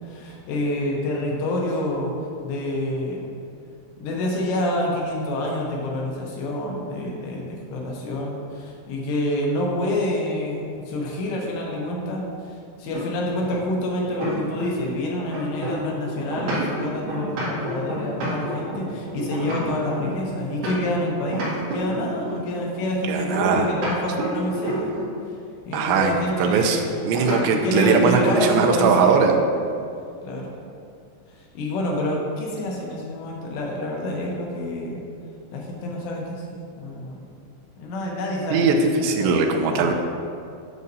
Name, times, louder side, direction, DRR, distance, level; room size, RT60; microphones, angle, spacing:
voice 1, 0.0-2.2 2.4-3.3 4.0-24.9 25.3-25.4 25.7-26.8 27.5-29.4 30.2-30.5 31.3-35.0 35.5-37.2 37.8-39.9, left 1 dB, 80° left, -2 dB, 3.1 m, -27 dB
sound 1, 12.9-14.9 15.2-21.0 21.3-22.5 23.4-25.2 27.1-27.4 27.8-28.0 28.3-29.0, right 1 dB, 55° right, 3.0 m, -29 dB
voice 2, 23.1-23.7 25.7-29.4 38.5-39.9, right 5 dB, 85° right, 3 dB, 2.8 m, -20 dB
9.6 x 6.4 x 2.7 m, 2.4 s
omnidirectional pair, 5.1 m